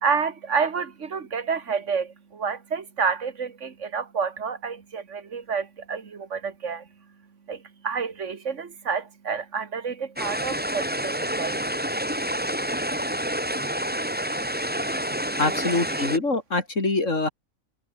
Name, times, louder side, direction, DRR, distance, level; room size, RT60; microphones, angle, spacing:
voice 1, 0.0-6.8 7.5-7.6 7.8-11.6, right 5 dB, 60° right, 2.1 m, -29 dB
sound 1, 10.2-16.2, equal, 5° right, 3.2 m, -28 dB
voice 2, 15.4-17.3, left 3 dB, 65° left, 4.1 m, -24 dB
omnidirectional pair, 1.4 m